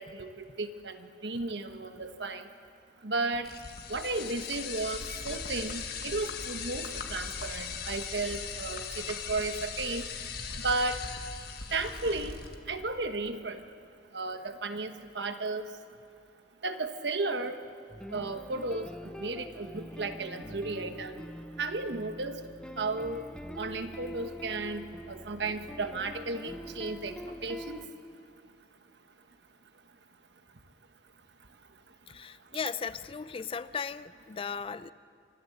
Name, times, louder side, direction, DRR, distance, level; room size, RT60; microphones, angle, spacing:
voice 1, 0.0-2.5 3.0-3.5 3.9-10.1 10.6-11.0 11.7-12.4 12.7-13.6 14.1-15.6 16.6-17.6 18.1-21.1 21.6-22.4 22.8-23.3 23.6-27.2 27.4-27.8, right 3 dB, 70° right, 1.2 m, -34 dB
sound 1, 3.4-12.6, left 5 dB, 60° left, 1.7 m, -39 dB
sound 2, 17.9-27.9, equal, 5° left, 0.9 m, -44 dB
voice 2, 32.1-34.9, left 6 dB, 30° left, 0.4 m, -37 dB
27.0 x 12.5 x 7.9 m
head